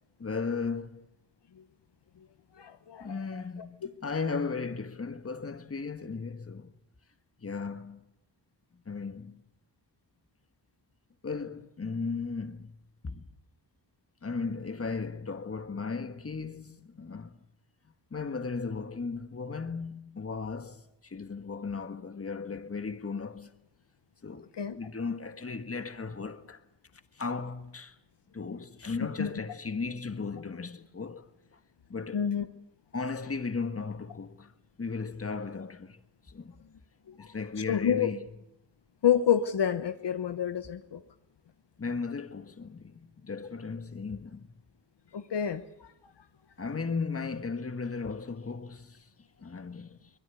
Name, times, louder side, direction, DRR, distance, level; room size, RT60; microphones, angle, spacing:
voice 1, 0.2-1.0 3.0-6.7 7.4-8.1 8.8-9.4 11.2-12.7 13.0-13.2 14.2-17.4 18.1-23.5 24.2-24.5 24.7-26.6 27.1-28.0 28.3-31.2 31.9-32.3 32.9-34.5 34.8-36.0 36.3-36.5 37.1-38.2 41.8-44.5 46.6-49.0 49.4-50.1, left 4 dB, 30° left, 1.6 m, -36 dB
voice 2, 2.6-3.4 24.5-24.8 29.0-29.3 32.1-32.5 37.1-37.3 37.7-38.1 39.0-41.0 45.1-45.9, left 9 dB, 65° left, 1.1 m, -28 dB
23.5 x 21.0 x 8.3 m
wide cardioid pair, 90°, 44 cm